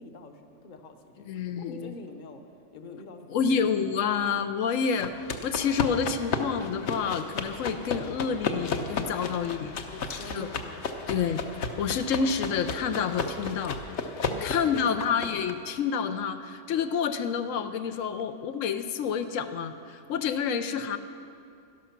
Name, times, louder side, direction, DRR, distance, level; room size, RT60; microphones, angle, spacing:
voice 1, 0.0-2.4 2.7-3.6 5.1-5.3 9.8-10.9 14.3-15.2, left 2 dB, 45° left, 6 dB, 0.9 m, -44 dB
voice 2, 1.3-1.9 3.3-9.8 10.3-10.5 11.1-13.8 14.4-21.0, left 6 dB, 85° left, 9 dB, 1.0 m, -28 dB
sound 1, 5.0-15.5, left 4 dB, 65° left, 1.1 m, -33 dB
12.0 x 12.0 x 5.9 m, 2.4 s
omnidirectional pair, 1.3 m